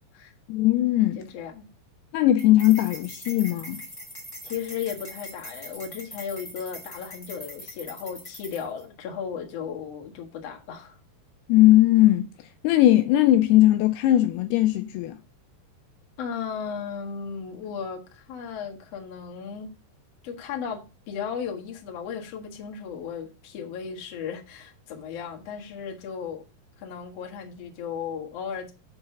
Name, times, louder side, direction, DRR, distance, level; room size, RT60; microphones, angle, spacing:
voice 1, 0.5-1.2 2.1-3.8 11.5-12.3 12.6-15.2, left 14 dB, 80° left, 2.4 m, -19 dB
voice 2, 1.2-1.7 4.4-11.0 16.2-19.7 20.2-26.4 26.8-28.7, left 7 dB, 50° left, 2.0 m, -35 dB
sound 1, 2.4-8.8, equal, 10° left, 1.1 m, -42 dB
7.7 x 4.2 x 6.8 m
omnidirectional pair, 4.8 m